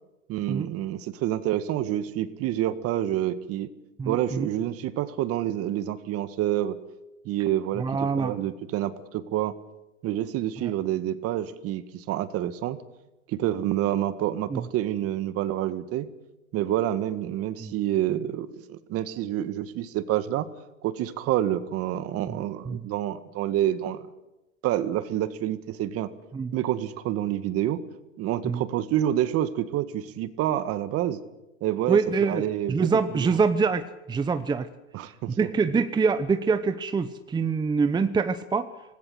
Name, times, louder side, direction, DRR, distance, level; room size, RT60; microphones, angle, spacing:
voice 1, 0.3-3.7 4.1-6.8 7.3-9.6 10.0-12.8 13.3-16.1 16.5-20.5 20.8-24.1 24.6-26.1 26.5-27.8 28.2-31.2 31.6-33.4 34.9-35.4, right 12 dB, 35° right, 13 dB, 1.8 m, -28 dB
voice 2, 4.0-4.5 7.8-8.3 10.6-10.7 14.5-14.6 17.6-17.7 22.7-22.8 26.3-26.5 28.4-28.6 31.9-32.4 32.7-34.7 35.4-38.7, right 5 dB, 10° right, 10 dB, 1.0 m, -25 dB
26.0 x 19.5 x 8.0 m, 1.0 s
hypercardioid pair, 120°, 38 cm